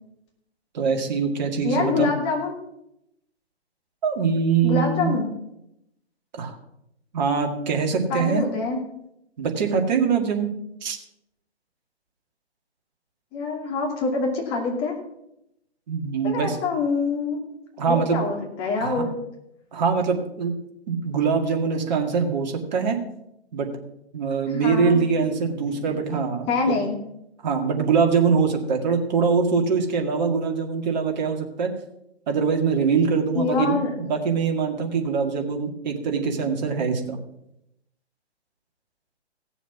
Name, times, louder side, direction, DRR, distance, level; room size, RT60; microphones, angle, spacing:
voice 1, 0.7-2.1 4.0-5.1 6.4-6.6 7.1-8.4 9.4-10.5 10.8-11.0 15.9-16.6 17.8-18.2 18.8-19.0 19.7-20.6 20.9-23.0 23.5-23.7 24.1-26.8 27.4-31.7 32.3-37.2, right 5 dB, 40° right, 3 dB, 2.1 m, -23 dB
voice 2, 1.6-2.5 4.6-5.3 8.1-8.8 13.3-15.0 16.2-17.4 17.9-19.1 24.5-25.0 26.5-27.0 33.3-33.9, left 4 dB, 25° left, 0 dB, 2.7 m, -25 dB
16.0 x 7.1 x 5.9 m, 0.82 s
figure-of-eight pair, 130°, 33 cm